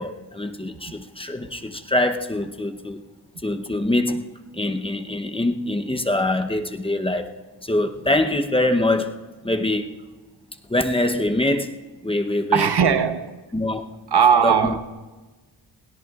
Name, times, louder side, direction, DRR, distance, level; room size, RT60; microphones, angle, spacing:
voice 1, 0.0-3.0 3.4-7.4 7.6-9.2 9.4-10.0 10.7-11.8 12.0-13.0 13.5-13.9 14.4-14.8, left 1 dB, 10° left, 0.8 m, -24 dB
voice 2, 12.5-13.3 14.1-14.8, right 7 dB, 60° right, 1.0 m, -18 dB
21.5 x 17.0 x 2.4 m
wide cardioid pair, 100°, 45 cm